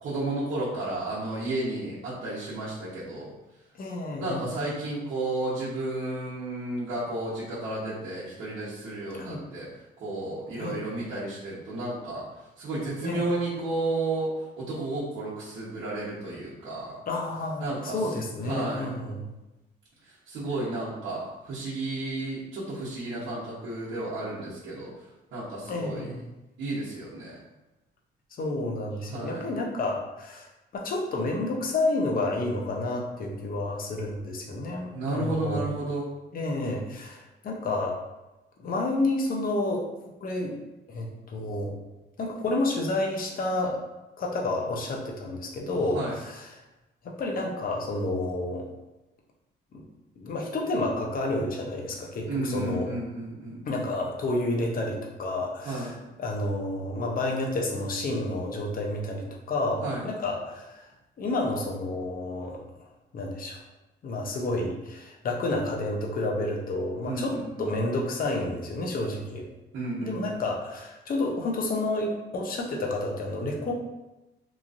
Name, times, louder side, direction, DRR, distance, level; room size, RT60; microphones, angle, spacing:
voice 1, 0.0-3.3 4.2-9.7 10.0-12.2 12.6-14.3 14.6-17.0 17.6-18.1 18.5-19.0 20.0-24.9 25.3-26.1 26.6-27.4 29.1-29.5 34.9-36.1 45.9-46.1 52.2-53.8 55.6-56.0 59.8-60.1 67.0-67.7 69.7-70.4, right 2 dB, 70° right, -11 dB, 1.0 m, -32 dB
voice 2, 3.7-4.4 9.1-9.4 10.5-10.8 13.0-13.3 17.1-19.3 25.7-26.2 28.4-35.7 36.3-38.0 38.6-39.9 40.2-40.5 40.9-41.8 42.2-43.8 44.2-46.6 47.0-48.6 49.7-49.8 50.2-52.9 53.6-60.8 61.2-62.6 63.1-63.6 64.0-69.5 70.0-73.7, left 2 dB, 45° left, 0 dB, 0.6 m, -30 dB
3.0 x 2.4 x 2.5 m, 1.0 s
cardioid pair, 90°, 20 cm